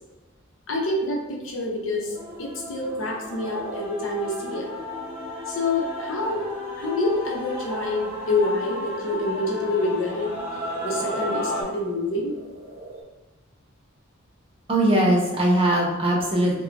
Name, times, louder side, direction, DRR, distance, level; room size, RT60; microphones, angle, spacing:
voice 1, 0.7-4.7 5.5-6.4 6.8-10.3 10.8-12.3, left 2 dB, 70° left, -1 dB, 0.7 m, -27 dB
sound 1, 2.0-13.0, right 1 dB, 80° right, 0.6 m, -44 dB
Male singing / Female singing / Musical instrument, 2.1-11.6, left 1 dB, 10° right, 1.5 m, -33 dB
voice 2, 14.7-16.6, right 1 dB, 30° right, -2 dB, 0.6 m, -20 dB
3.1 x 2.2 x 2.5 m, 1.1 s
head